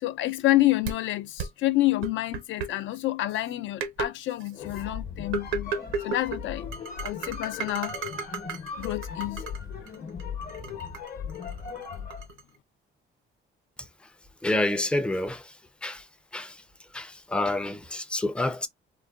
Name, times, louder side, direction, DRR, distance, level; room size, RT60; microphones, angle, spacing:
voice 1, 0.0-5.7 6.0-6.7 7.0-7.9 8.8-9.4, left 16 dB, 75° left, 0.4 m, -28 dB
sound 1, 0.9-1.0 1.4-1.5 2.0-2.7 3.4-3.5 3.8-4.1 4.4-4.8 5.3-6.4 6.7-9.6 9.9-12.4, right 5 dB, 85° right, 0.8 m, -33 dB
sound 2, 4.5-12.3, left 7 dB, 50° left, 0.8 m, -38 dB
voice 2, 14.4-15.5 15.8-16.0 16.3-16.6 16.9-18.7, left 2 dB, 5° left, 0.4 m, -28 dB
3.8 x 2.2 x 2.3 m
cardioid pair, 135°, 20 cm